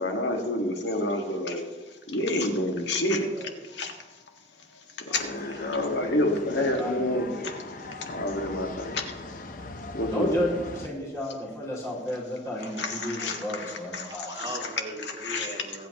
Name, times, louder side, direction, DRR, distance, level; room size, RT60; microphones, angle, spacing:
voice 1, 0.0-1.6 2.1-3.3 3.7-3.9 5.1-7.5 8.1-9.0 9.9-10.3 12.8-14.6 15.2-15.5, left 1 dB, 90° left, 3 dB, 1.7 m, -28 dB
voice 2, 1.2-1.5 2.9-3.5 5.1-5.9 12.7-13.2 14.1-15.9, right 1 dB, 25° right, 1 dB, 1.7 m, -41 dB
sound 1, 5.1-10.9, left 2 dB, 50° left, 0.8 m, -40 dB
voice 3, 6.5-7.2 10.1-14.3, left 1 dB, 20° left, -5 dB, 2.4 m, -32 dB
25.0 x 8.3 x 3.0 m, 1.2 s
head